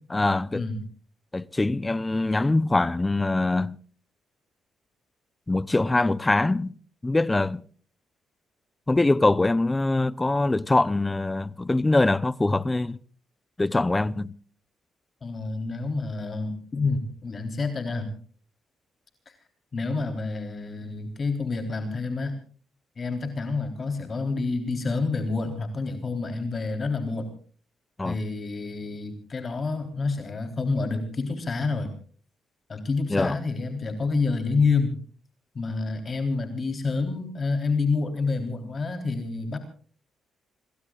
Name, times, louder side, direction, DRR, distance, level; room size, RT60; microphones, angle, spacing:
voice 1, 0.1-0.6 1.3-3.8 5.5-6.7 7.0-7.6 8.9-13.0 13.6-14.3 28.0-28.2 33.1-33.4, left 2 dB, 15° left, 0.7 m, -23 dB
voice 2, 15.2-18.1 19.3-19.4 19.7-22.4 23.0-27.3 28.0-31.9 32.7-35.0 35.5-39.6, left 4 dB, 40° left, 3.6 m, -28 dB
27.5 x 22.0 x 2.4 m
cardioid pair, 90°, 0 cm